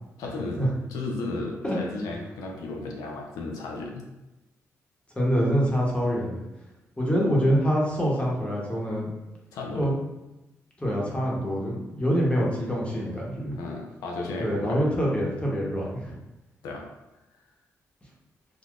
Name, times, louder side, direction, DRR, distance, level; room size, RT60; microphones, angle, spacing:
voice 1, 0.2-0.6 0.9-4.0 9.5-9.9 13.6-14.8 16.6-16.8, left 2 dB, 85° left, 0 dB, 0.5 m, -34 dB
voice 2, 5.2-6.4 7.0-9.1 9.8-9.9 10.8-13.6 14.4-16.1, equal, 20° left, -4 dB, 1.0 m, -25 dB
3.6 x 2.2 x 2.4 m, 0.98 s
supercardioid pair, 60°, 6 cm